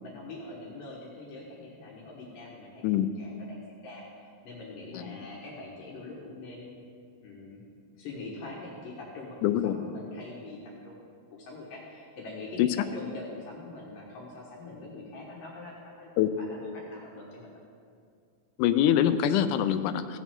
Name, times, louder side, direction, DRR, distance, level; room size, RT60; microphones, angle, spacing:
voice 1, 0.0-2.8 3.2-6.7 7.2-7.6 8.0-11.0 11.3-16.1 16.4-17.6, left 2 dB, 70° left, -3 dB, 2.9 m, -43 dB
voice 2, 9.4-9.7 12.6-12.7 16.2-16.3 18.6-20.2, left 10 dB, 90° left, 9 dB, 1.8 m, -24 dB
16.5 x 8.3 x 3.6 m, 2.3 s
omnidirectional pair, 4.2 m